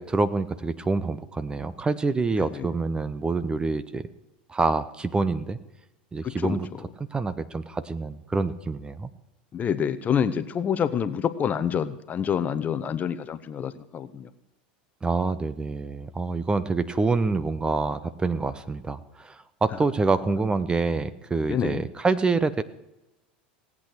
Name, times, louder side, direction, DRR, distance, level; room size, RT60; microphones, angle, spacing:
voice 1, 0.0-4.0 4.5-5.6 6.1-6.7 7.0-9.1 15.0-22.6, right 3 dB, 15° right, 15 dB, 0.8 m, -26 dB
voice 2, 6.2-6.6 9.5-14.3 21.5-21.8, left 8 dB, 30° left, 12 dB, 0.9 m, -27 dB
18.0 x 8.6 x 6.4 m, 0.96 s
hypercardioid pair, 95°, 5 cm